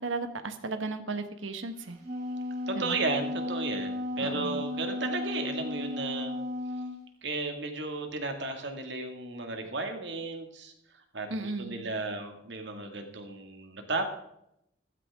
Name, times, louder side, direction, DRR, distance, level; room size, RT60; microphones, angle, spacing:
voice 1, 0.0-2.0 2.7-3.0 4.2-4.7 11.3-11.9, right 3 dB, 85° right, 8 dB, 1.3 m, -35 dB
Wind instrument woodwind instrument, 1.8-7.0, left 2 dB, 45° right, 5.4 m, -34 dB
voice 2, 2.7-6.3 7.2-10.7 11.1-14.1, right 3 dB, 65° right, 4 dB, 2.2 m, -34 dB
15.0 x 13.5 x 3.7 m, 0.78 s
head